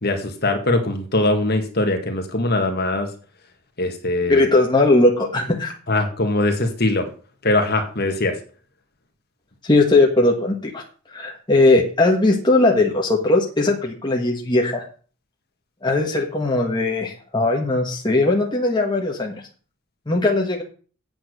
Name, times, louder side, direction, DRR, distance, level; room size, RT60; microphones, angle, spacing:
voice 1, 0.0-3.1 3.8-4.5 5.9-7.1 7.4-8.3, left 2 dB, 45° left, 5 dB, 1.8 m, -21 dB
voice 2, 4.3-5.7 9.6-10.8 11.1-14.9 15.8-19.4 20.1-20.6, left 2 dB, 20° left, 0 dB, 1.5 m, -19 dB
8.8 x 8.1 x 6.6 m, 0.40 s
head